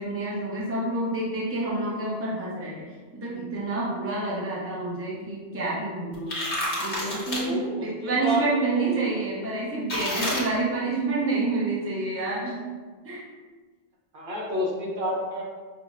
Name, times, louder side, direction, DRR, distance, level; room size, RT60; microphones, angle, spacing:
voice 1, 0.0-6.4 6.8-12.7 13.0-13.2, right 2 dB, 15° right, -5 dB, 0.6 m, -28 dB
sound 1, 6.1-7.4 9.9-10.4, left 1 dB, 60° left, 1.1 m, -29 dB
voice 2, 7.3-9.0 14.1-15.4, left 1 dB, 60° right, -3 dB, 0.8 m, -30 dB
5.4 x 2.1 x 2.4 m, 1.4 s
omnidirectional pair, 1.0 m